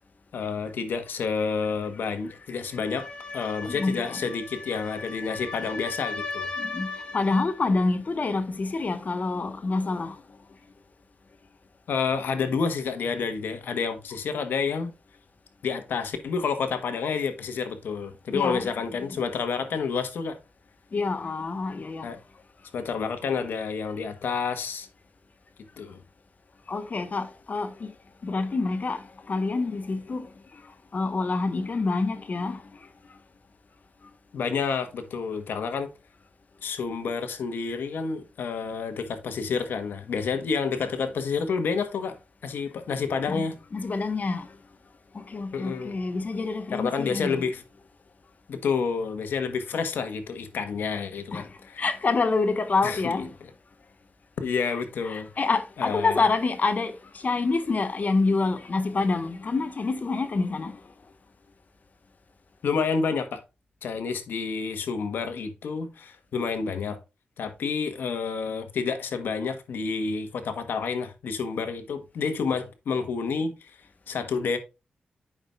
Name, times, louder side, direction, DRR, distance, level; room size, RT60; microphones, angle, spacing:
voice 1, 0.3-3.1 3.3-6.5 11.9-14.9 15.6-20.4 22.0-22.2 22.7-24.9 25.8-26.0 34.3-35.9 36.6-43.6 45.5-46.0 46.7-47.6 48.5-51.9 52.8-53.2 54.4-55.4 55.8-56.2 62.6-63.4 63.8-67.0 67.4-73.8 74.1-74.6, left 5 dB, 90° left, 1.3 m, -29 dB
sound 1, 2.7-7.6, left 3 dB, 30° left, 3.0 m, -37 dB
voice 2, 3.7-4.2 6.6-10.2 18.3-18.7 20.9-22.1 26.7-27.9 28.2-32.9 37.7-37.8 43.3-43.4 43.7-44.5 45.1-47.4 51.3-53.3 55.0-60.8, left 3 dB, 50° left, 1.4 m, -27 dB
8.8 x 6.0 x 2.5 m
cardioid pair, 60°, 3 cm